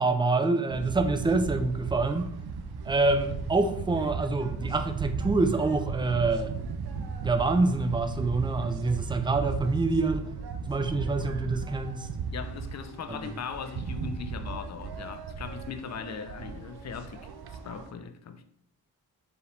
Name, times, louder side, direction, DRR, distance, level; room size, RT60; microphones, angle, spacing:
voice 1, 0.0-2.3 2.9-6.5 7.2-10.3 10.7-12.1 13.1-13.2, right 3 dB, 10° right, 0.5 m, -26 dB
sound 1, 0.7-17.9, right 5 dB, 60° right, 0.6 m, -36 dB
voice 2, 12.3-18.4, left 6 dB, 40° left, 0.5 m, -39 dB
4.8 x 3.3 x 2.6 m
supercardioid pair, 45°, 43 cm